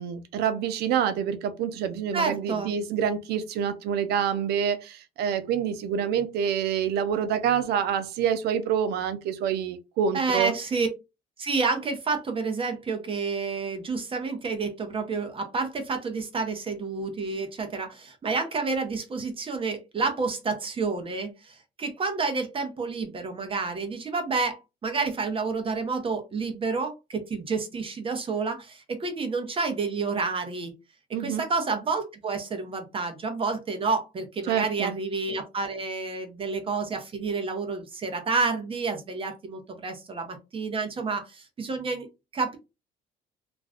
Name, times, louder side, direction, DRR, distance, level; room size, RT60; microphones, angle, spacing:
voice 1, 0.0-10.5 31.1-31.4 34.5-34.9, right 8 dB, 75° right, 0.6 m, -27 dB
voice 2, 2.1-2.7 10.1-10.9 11.4-30.7 31.2-42.1 42.3-42.6, right 4 dB, 30° right, 0.7 m, -29 dB
2.5 x 2.2 x 3.4 m
cardioid pair, 110°, 17 cm